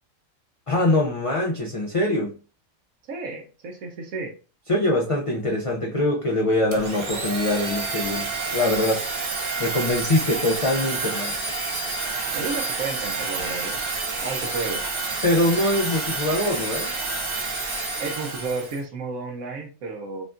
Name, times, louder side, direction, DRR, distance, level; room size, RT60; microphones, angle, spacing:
voice 1, 0.7-2.4 4.7-9.0 9.6-11.4 15.2-16.9, left 1 dB, 60° left, 0.3 m, -23 dB
voice 2, 3.1-4.4 12.3-14.8 18.0-20.2, right 4 dB, 80° right, 1.3 m, -32 dB
Domestic sounds home sounds, 6.7-18.8, right 3 dB, 40° right, 0.4 m, -29 dB
5.3 x 2.3 x 2.5 m
omnidirectional pair, 1.4 m